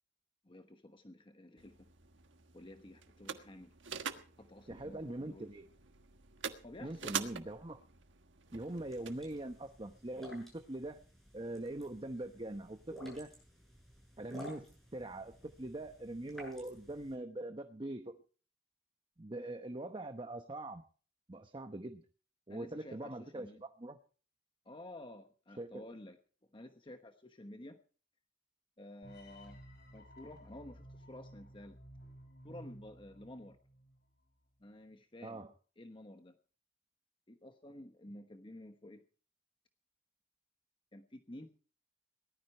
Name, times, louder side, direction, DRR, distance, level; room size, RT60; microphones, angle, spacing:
voice 1, 0.4-1.9 2.5-3.7 4.4-5.5 6.6-7.1 22.5-23.6 24.6-26.2 26.5-27.8 28.8-29.6 29.9-31.8 32.4-33.6 34.6-35.4 35.8-36.4 37.3-39.0 40.9-41.5, left 1 dB, 30° left, 6 dB, 1.1 m, -52 dB
sound 1, 1.6-9.6, right 7 dB, 90° right, 1.4 m, -46 dB
voice 2, 4.7-5.7 6.8-7.8 8.5-11.0 11.3-13.3 14.2-18.2 19.2-20.8 21.3-22.0 22.5-24.0 25.6-25.8 35.2-35.5, right 1 dB, 25° right, 7 dB, 0.9 m, -42 dB
sound 2, 8.7-17.1, equal, ahead, 7.9 m, -54 dB
sound 3, 29.0-34.1, equal, 60° left, 5.2 m, -55 dB
18.5 x 13.0 x 4.5 m, 0.41 s
head